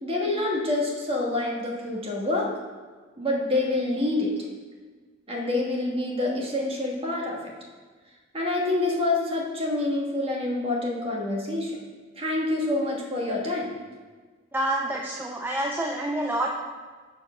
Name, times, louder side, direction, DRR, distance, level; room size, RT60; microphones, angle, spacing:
voice 1, 0.0-2.5 3.2-4.3 5.3-7.4 8.3-11.8 12.1-13.7, left 2 dB, 30° right, -2 dB, 1.5 m, -27 dB
voice 2, 14.5-16.5, right 1 dB, 10° right, -1 dB, 0.5 m, -27 dB
6.5 x 4.6 x 6.1 m, 1.4 s
head